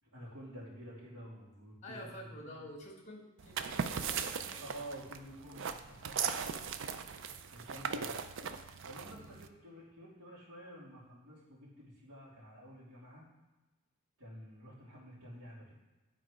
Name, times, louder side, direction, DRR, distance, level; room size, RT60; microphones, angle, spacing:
voice 1, 0.0-2.6 4.6-6.4 7.5-8.1 8.9-13.2 14.2-15.7, equal, 85° right, -6 dB, 2.7 m, -50 dB
voice 2, 1.8-4.6 9.1-9.4, equal, 30° left, 0 dB, 1.5 m, -49 dB
sound 1, 3.4-9.5, right 6 dB, 55° right, 0.4 m, -39 dB
9.9 x 4.0 x 4.9 m, 1.2 s
head